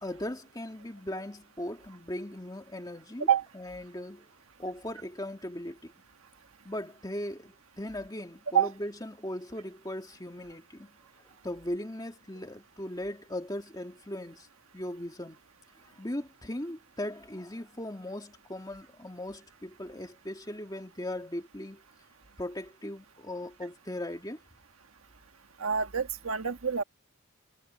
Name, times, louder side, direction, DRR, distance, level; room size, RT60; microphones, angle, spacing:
voice 1, 0.0-3.3 3.5-4.3 4.6-5.9 6.6-10.9 11.2-14.5 14.7-15.4 16.0-21.8 22.4-24.4, left 1 dB, 15° left, 2.1 m, -38 dB
voice 2, 25.6-26.8, right 8 dB, 70° right, 1.5 m, -26 dB
head